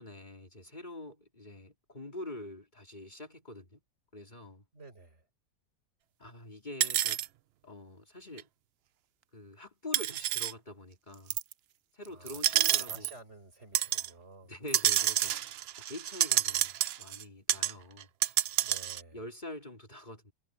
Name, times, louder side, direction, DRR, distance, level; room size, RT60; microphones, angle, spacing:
voice 1, 0.0-3.8 4.1-4.6 6.2-7.2 7.6-8.5 9.3-11.4 11.9-13.1 14.5-15.4 15.8-18.1 19.1-20.3, left 1 dB, 30° left, 3.0 m, -45 dB
voice 2, 4.7-5.2 12.1-14.5 18.6-19.2, right 3 dB, 50° right, 5.0 m, -52 dB
sound 1, 6.8-7.3 8.4-8.5 9.9-10.5 11.3-11.5 12.3-13.1 13.7-14.1 14.7-17.2 17.5-17.7 18.0-19.0, right 12 dB, 70° right, 0.6 m, -29 dB
omnidirectional pair, 1.5 m